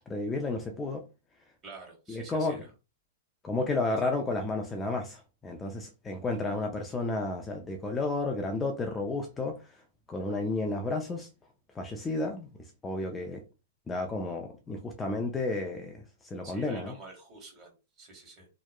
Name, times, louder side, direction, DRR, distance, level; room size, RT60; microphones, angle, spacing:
voice 1, 0.1-1.0 2.1-2.6 3.4-9.6 10.1-11.3 11.8-12.5 12.8-13.4 13.9-16.9, left 2 dB, 15° left, 0.4 m, -32 dB
voice 2, 1.6-2.6 16.4-18.5, right 3 dB, 30° right, 1.5 m, -48 dB
2.8 x 2.1 x 2.2 m
hypercardioid pair, 115°, 0 cm